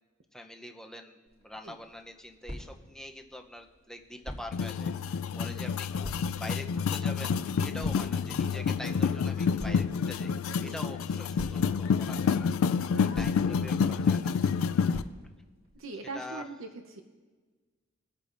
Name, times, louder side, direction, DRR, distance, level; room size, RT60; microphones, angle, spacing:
voice 1, 0.3-6.1 6.3-10.3 10.6-12.5 13.0-14.3 16.1-16.5, left 1 dB, 5° left, 3 dB, 0.6 m, -44 dB
sound 1, 1.3-15.8, equal, 35° right, 2.6 m, -47 dB
sound 2, 4.5-15.0, left 6 dB, 75° left, 0.3 m, -28 dB
voice 2, 15.8-17.0, right 3 dB, 80° right, 5 dB, 0.7 m, -42 dB
23.0 x 8.1 x 2.5 m, 1.4 s
head